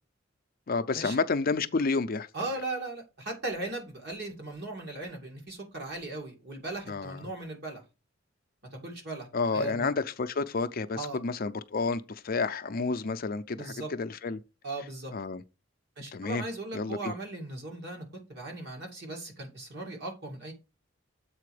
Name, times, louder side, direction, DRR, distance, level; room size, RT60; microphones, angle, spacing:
voice 1, 0.7-2.3 6.9-7.2 9.3-14.4 15.1-15.4 16.1-16.4 16.7-17.1, left 4 dB, 50° left, 0.5 m, -30 dB
voice 2, 2.3-7.8 8.7-9.3 9.5-9.9 11.0-11.2 13.6-13.9 14.6-15.1 16.0-20.5, right 2 dB, 60° right, 2.5 m, -38 dB
7.6 x 4.3 x 4.9 m
head